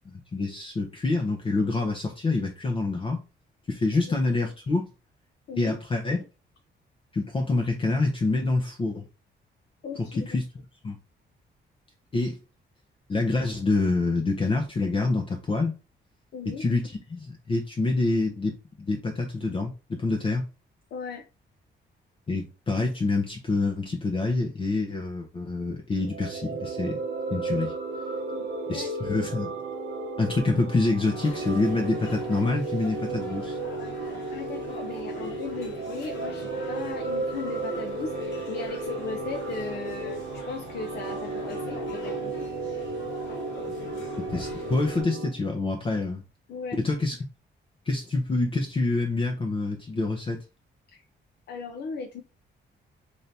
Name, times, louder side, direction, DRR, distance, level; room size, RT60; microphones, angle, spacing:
voice 1, 0.1-3.2 3.7-4.9 5.6-6.2 7.1-9.0 10.0-10.5 10.8-11.0 12.1-12.4 13.1-15.8 16.6-20.4 22.3-27.0 27.3-27.7 28.7-29.5 30.2-33.6 38.7-38.8 43.7-46.2 46.8-47.2 47.9-50.4, left 3 dB, 30° left, 0.7 m, -27 dB
voice 2, 9.8-10.3 16.3-16.6 20.9-21.2 28.3-28.9 33.1-33.3 34.3-42.4 46.5-46.8 50.9-51.0 51.5-52.2, left 4 dB, 65° left, 0.6 m, -37 dB
sound 1, 26.0-45.3, right 3 dB, 60° right, 0.9 m, -34 dB
sound 2, 31.1-45.0, left 4 dB, 90° left, 1.3 m, -43 dB
3.3 x 2.7 x 4.1 m
cardioid pair, 135°, 19 cm